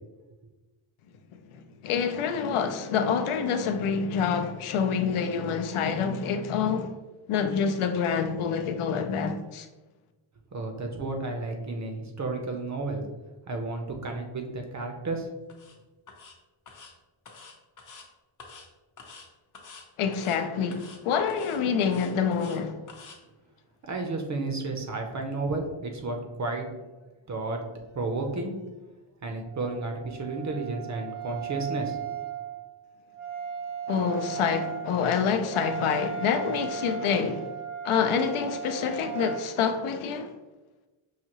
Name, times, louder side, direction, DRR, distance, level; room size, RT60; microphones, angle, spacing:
voice 1, 1.8-6.9 7.3-9.7 20.0-22.8 33.9-37.5 37.8-40.3, left 6 dB, 80° left, 0.6 m, -27 dB
voice 2, 10.5-13.1 13.5-15.3 23.8-26.7 27.3-27.6 27.9-28.5 29.2-32.0, right 3 dB, 35° right, 0.5 m, -32 dB
sound 1, 15.5-15.7 16.1-16.3 16.7-16.9 17.3-18.1 18.4-18.7 19.0-19.3 19.5-19.8 20.1-20.4 20.7-21.0 21.3-22.6 22.9-23.2, left 4 dB, 40° left, 0.6 m, -48 dB
Wind instrument woodwind instrument, 29.4-39.5, right 7 dB, 85° right, 0.8 m, -37 dB
5.7 x 2.7 x 2.9 m
wide cardioid pair, 165°, 49 cm